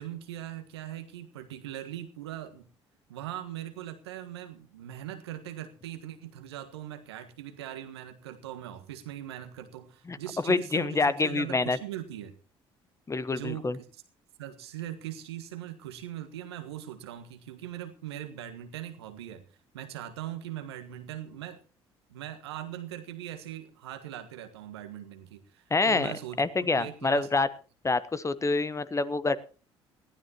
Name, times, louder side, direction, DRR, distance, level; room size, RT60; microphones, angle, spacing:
voice 1, 0.0-2.7 3.1-12.3 13.3-13.9 14.4-19.4 19.7-21.6 22.1-27.3, right 12 dB, 80° right, 8 dB, 1.5 m, -40 dB
voice 2, 10.5-11.8 13.1-13.8 25.7-26.1 26.4-27.5 27.8-29.4, left 3 dB, 20° left, 15 dB, 1.1 m, -26 dB
20.5 x 15.0 x 3.0 m, 0.36 s
figure-of-eight pair, 55°, 13 cm